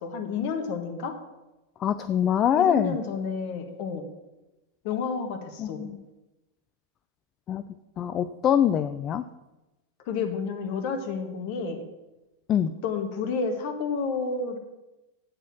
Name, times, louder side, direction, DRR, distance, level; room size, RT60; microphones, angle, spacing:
voice 1, 0.0-1.1 2.5-4.0 4.8-5.8 10.1-11.9 12.8-14.6, left 5 dB, 45° left, 6 dB, 1.6 m, -30 dB
voice 2, 1.8-3.0 5.6-5.9 7.5-7.6 8.0-9.2 12.5-12.7, left 9 dB, 30° left, 11 dB, 0.4 m, -24 dB
8.3 x 6.7 x 7.4 m, 1.0 s
figure-of-eight pair, 90°, 0 cm